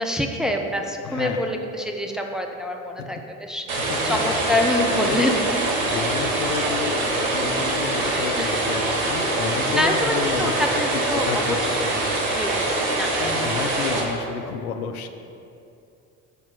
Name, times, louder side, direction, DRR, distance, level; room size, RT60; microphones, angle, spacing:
voice 1, 0.0-5.5 8.4-8.6 9.7-11.4 11.8-11.9 12.3-12.7 12.9-13.3 13.8-13.9, left 1 dB, ahead, 2 dB, 0.6 m, -26 dB
voice 2, 1.0-1.6 3.0-3.2 3.9-4.6 4.9-5.2 5.8-10.7 11.1-12.0 13.2-15.1, left 6 dB, 80° left, 7 dB, 0.6 m, -31 dB
sound 1, 3.7-14.0, right 2 dB, 70° right, 1.3 m, -24 dB
6.8 x 4.3 x 5.9 m, 2.7 s
figure-of-eight pair, 60°, 43 cm